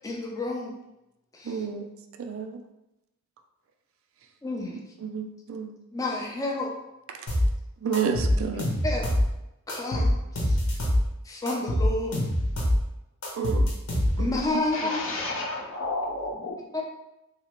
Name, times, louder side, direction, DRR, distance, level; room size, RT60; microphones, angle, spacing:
voice 1, 0.0-0.7 1.3-1.6 4.4-4.8 5.9-6.7 8.8-9.1 9.7-10.6 11.2-12.2 14.2-15.1 16.7-16.8, left 2 dB, 15° left, -1 dB, 0.4 m, -30 dB
voice 2, 1.4-1.9 2.2-2.6 5.0-5.7 7.1-7.3 7.8-8.7 13.3-13.7 14.2-14.9, right 6 dB, 60° right, 5 dB, 0.3 m, -31 dB
sound 1, 7.3-7.5 7.9-9.3 9.7-11.0 11.5-12.8 13.2-14.4, left 1 dB, 85° left, 1.0 m, -24 dB
voice 3, 14.7-16.8, left 2 dB, 60° left, -1 dB, 0.8 m, -32 dB
3.2 x 2.8 x 2.9 m, 0.90 s
head